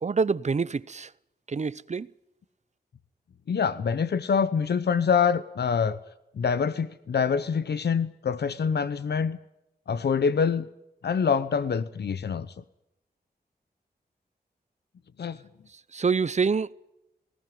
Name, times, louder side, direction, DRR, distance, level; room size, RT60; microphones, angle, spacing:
voice 1, 0.0-1.1 1.5-2.1 15.9-16.7, right 5 dB, 45° right, 0.7 m, -26 dB
voice 2, 3.5-6.0 6.3-9.4 9.9-10.7 11.0-12.5 15.2-15.4, left 6 dB, 80° left, 0.9 m, -25 dB
20.0 x 18.0 x 9.4 m
wide cardioid pair, 70°, 17 cm